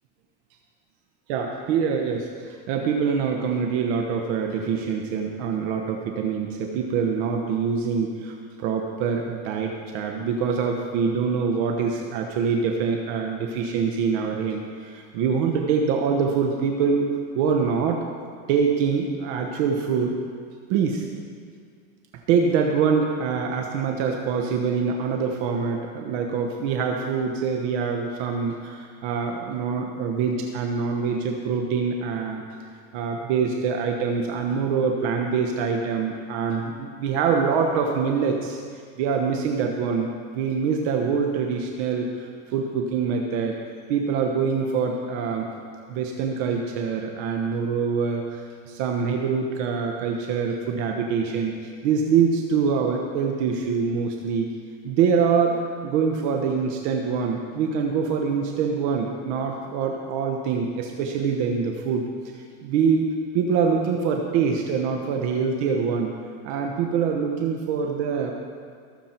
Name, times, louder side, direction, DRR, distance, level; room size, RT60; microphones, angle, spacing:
voice 1, 1.3-17.1 17.3-18.1 18.5-20.2 20.7-21.1 22.3-32.4 32.9-38.6 39.0-43.6 43.9-45.5 45.9-54.5 54.8-63.1 63.3-66.1 66.4-68.3, right 6 dB, 70° right, 3 dB, 1.2 m, -25 dB
20.0 x 7.4 x 4.5 m, 2.1 s
supercardioid pair, 125°, 35 cm